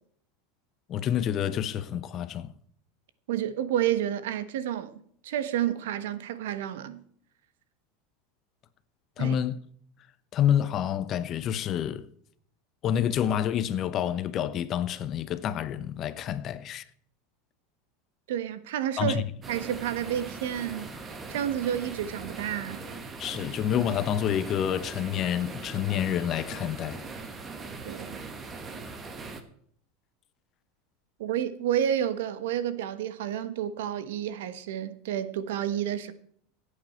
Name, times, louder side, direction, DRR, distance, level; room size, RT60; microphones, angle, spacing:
voice 1, 0.9-2.5 9.2-9.6 10.3-12.1 12.8-16.8 19.0-19.2 23.2-27.0, left 10 dB, 35° left, 0.8 m, -28 dB
voice 2, 3.3-4.9 5.2-7.0 9.2-9.4 18.3-19.2 19.5-20.9 21.3-22.8 27.8-28.3 31.2-36.1, right 10 dB, 80° right, 1.2 m, -30 dB
sound 1, 19.4-29.4, right 4 dB, 20° right, 1.4 m, -40 dB
16.0 x 8.6 x 4.4 m
supercardioid pair, 145°, 0 cm